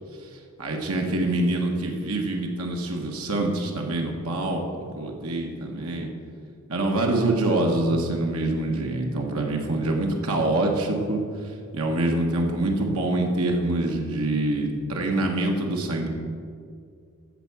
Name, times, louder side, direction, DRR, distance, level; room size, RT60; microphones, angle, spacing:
voice 1, 0.6-6.1 6.7-11.2 11.7-16.1, right 2 dB, 85° right, 1 dB, 1.3 m, -25 dB
13.5 x 4.7 x 7.4 m, 2.2 s
head